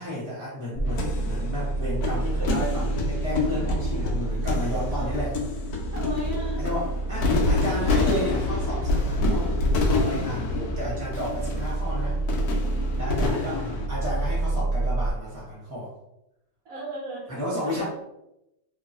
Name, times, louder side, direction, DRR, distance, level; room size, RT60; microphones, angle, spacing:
voice 1, 0.0-5.3 6.6-9.6 9.9-12.2 12.9-13.6 13.9-15.9 17.3-17.8, equal, 10° right, -7 dB, 1.4 m, -32 dB
sound 1, 0.7-15.1, right 3 dB, 30° right, 0.6 m, -29 dB
sound 2, 0.9-13.9, left 3 dB, 70° left, 1.0 m, -27 dB
voice 2, 4.9-5.3 5.9-6.6 13.0-13.6 14.8-14.9 16.6-17.8, right 1 dB, 65° right, -4 dB, 1.1 m, -38 dB
2.9 x 2.8 x 2.8 m, 0.89 s
omnidirectional pair, 1.8 m